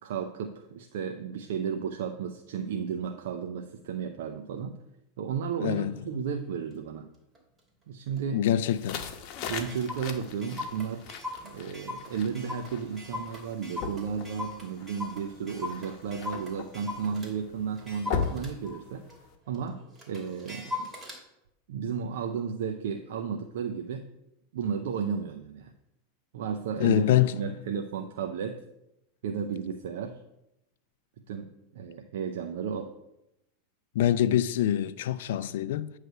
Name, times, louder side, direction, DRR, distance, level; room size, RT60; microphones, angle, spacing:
voice 1, 0.0-4.8 5.2-7.1 7.9-8.5 9.5-11.1 11.4-19.0 19.5-19.8 20.1-20.9 21.7-24.1 24.5-25.7 26.3-28.6 29.2-30.2 31.3-32.9, right 7 dB, 75° right, 0.6 m, -33 dB
voice 2, 5.6-6.0 8.3-9.0 26.8-27.4 33.9-35.9, left 11 dB, 75° left, 0.4 m, -25 dB
Clock, 6.7-6.8 7.3-7.6 8.2-8.3 8.5-8.6 9.0-9.1 9.3-17.3 17.8-21.2, left 3 dB, 20° right, 2.6 m, -40 dB
sound 1, 8.6-19.3, left 6 dB, 50° left, 1.0 m, -39 dB
9.2 x 3.2 x 6.6 m
hypercardioid pair, 115°, 0 cm